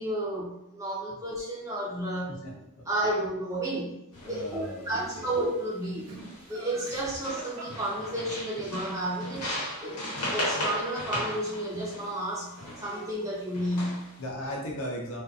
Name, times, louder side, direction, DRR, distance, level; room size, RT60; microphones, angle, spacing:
voice 1, 0.0-2.3 2.9-10.0 10.3-14.1, right 1 dB, 15° right, -5 dB, 0.6 m, -32 dB
voice 2, 2.3-2.9 4.2-5.3 14.2-15.2, equal, 65° left, -1 dB, 0.7 m, -37 dB
sound 1, 4.1-4.5 4.9-5.5 6.1-6.6 6.9-13.0 13.5-14.2, left 1 dB, 90° left, 0.9 m, -36 dB
Laughter, 6.0-8.7 11.5-12.3 12.5-13.1, right 3 dB, 65° right, 0.4 m, -46 dB
2.5 x 2.4 x 2.4 m, 0.84 s
head